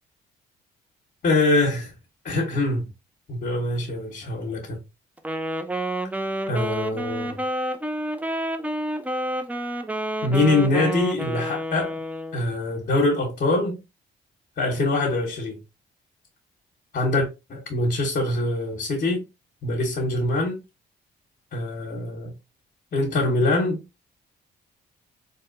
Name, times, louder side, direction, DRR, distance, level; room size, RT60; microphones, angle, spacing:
voice 1, 1.2-1.9 2.2-2.9 3.3-4.8 6.5-7.4 10.2-12.0 12.3-13.8 14.6-15.6 16.9-19.2 19.6-20.6 21.5-22.3 22.9-23.8, left 2 dB, 50° left, 1.1 m, -24 dB
Wind instrument woodwind instrument, 5.2-12.4, right 1 dB, 10° right, 0.4 m, -29 dB
3.5 x 2.7 x 2.6 m
cardioid pair, 75°, 19 cm